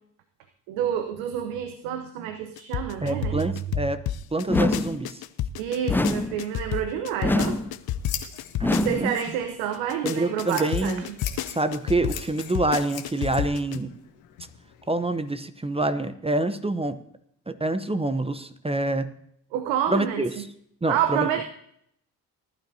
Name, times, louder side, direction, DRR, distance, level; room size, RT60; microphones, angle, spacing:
voice 1, 0.7-3.4 5.6-7.6 8.7-11.0 11.4-11.5 19.5-20.2 20.9-21.4, right 9 dB, 70° right, 8 dB, 1.0 m, -28 dB
sound 1, 2.6-9.3 9.7-13.8, left 11 dB, 50° left, 0.8 m, -30 dB
voice 2, 3.0-4.0 4.3-5.2 8.6-9.1 10.0-11.0 11.5-13.9 14.9-17.0 17.5-19.1 19.9-20.5 20.8-21.3, right 2 dB, 10° right, 11 dB, 0.9 m, -26 dB
sound 2, 4.5-5.0 5.9-6.4 7.2-7.7 8.6-9.1, left 1 dB, 5° left, 0.5 m, -24 dB
Scissors, 7.2-15.3, left 10 dB, 75° left, 1.6 m, -42 dB
19.5 x 11.5 x 2.8 m, 0.70 s
hypercardioid pair, 50°, 48 cm